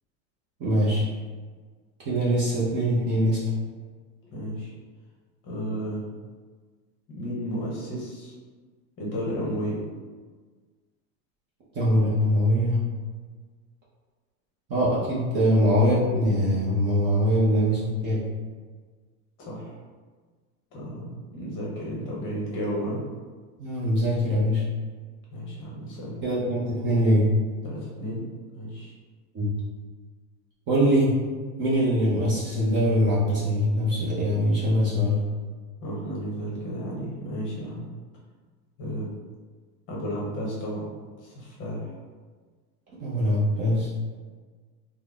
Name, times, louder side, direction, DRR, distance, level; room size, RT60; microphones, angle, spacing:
voice 1, 0.6-1.0 2.0-3.4 11.7-12.8 14.7-18.2 23.6-24.6 26.2-27.3 29.3-29.5 30.7-31.1 31.6-35.2 43.0-43.9, equal, 25° right, -7 dB, 0.5 m, -22 dB
voice 2, 4.3-4.7 5.4-6.1 7.2-8.3 9.0-9.8 19.4-19.8 20.7-23.0 25.3-26.2 27.6-28.3 28.5-28.9 35.8-37.9 38.8-39.1 39.9-40.9 41.2-41.9, equal, 25° left, -5 dB, 0.7 m, -33 dB
3.7 x 2.0 x 3.3 m, 1.5 s
supercardioid pair, 165°, 43 cm